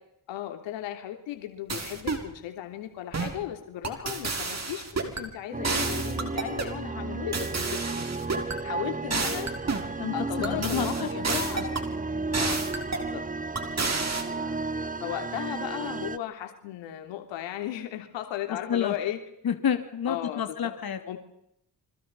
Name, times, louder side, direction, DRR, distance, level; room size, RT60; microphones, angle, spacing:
voice 1, 0.3-8.0 8.6-9.5 10.1-10.9 11.3-11.7 12.4-12.6 12.9-13.2 14.2-19.2 20.1-20.4 21.1-21.2, left 12 dB, 90° left, 6 dB, 3.3 m, -36 dB
sound 1, 1.7-2.3 3.1-3.4 3.8-5.2 5.6-6.8 7.3-8.6 9.1-9.9 10.4-11.9 12.3-13.1 13.6-14.2, right 4 dB, 35° right, 6.2 m, -30 dB
sound 2, 5.5-16.2, right 3 dB, 20° right, 1.3 m, -33 dB
voice 2, 10.0-11.2 11.6-11.7 18.5-19.0 19.4-21.0, left 8 dB, 55° left, 7 dB, 3.0 m, -30 dB
28.0 x 25.5 x 5.6 m, 0.76 s
supercardioid pair, 60°, 43 cm